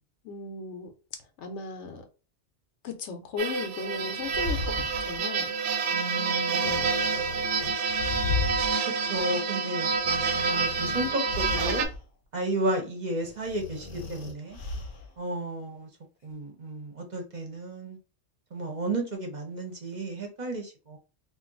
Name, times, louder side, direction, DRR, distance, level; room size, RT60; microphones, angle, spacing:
voice 1, 0.2-0.9 1.4-2.0 2.8-5.5 6.5-6.9, left 4 dB, 80° left, 1.0 m, -36 dB
sound 1, 3.4-11.9, right 5 dB, 90° right, 0.9 m, -28 dB
sound 2, 4.0-5.2 6.6-8.7 9.2-9.3 9.9-12.0 13.2-15.1, left 3 dB, 55° left, 0.8 m, -35 dB
voice 2, 5.9-7.3 9.1-11.9 12.3-14.6 15.2-15.9 16.2-18.0 18.5-21.0, right 1 dB, 45° right, 0.8 m, -33 dB
2.6 x 2.4 x 3.8 m
omnidirectional pair, 1.2 m